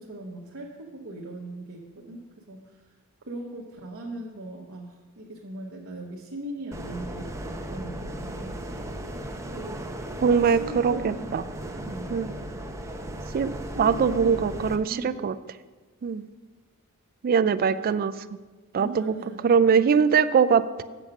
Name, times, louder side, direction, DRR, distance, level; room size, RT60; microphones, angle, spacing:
voice 1, 0.0-2.9 3.2-8.9 9.5-9.8 10.2-11.3 11.7-12.2 13.7-15.3 18.8-19.7, right 1 dB, 60° right, -3 dB, 1.0 m, -39 dB
sound 1, 6.7-14.8, right 1 dB, 15° right, 0.7 m, -36 dB
voice 2, 10.2-11.4 12.1-12.3 13.3-13.5 13.8-15.4 16.0-16.3 17.2-18.1 18.7-19.1 19.4-20.8, right 6 dB, 40° right, 13 dB, 0.3 m, -22 dB
8.2 x 7.0 x 5.9 m, 1.3 s
head